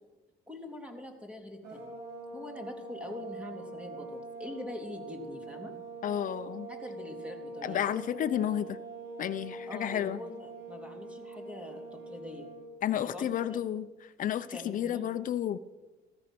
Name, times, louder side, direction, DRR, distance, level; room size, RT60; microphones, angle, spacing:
voice 1, 0.5-2.0 2.3-5.7 6.7-7.9 9.7-12.5 12.9-13.6 14.5-15.1, left 1 dB, 5° right, 3 dB, 3.1 m, -43 dB
sound 1, 1.6-12.7, right 3 dB, 75° right, 6.5 m, -44 dB
voice 2, 6.0-6.7 7.6-8.8 9.2-10.2 12.8-13.9 14.2-15.6, left 10 dB, 50° left, 11 dB, 0.9 m, -31 dB
15.5 x 13.5 x 6.2 m, 1.1 s
cardioid pair, 110°, 17 cm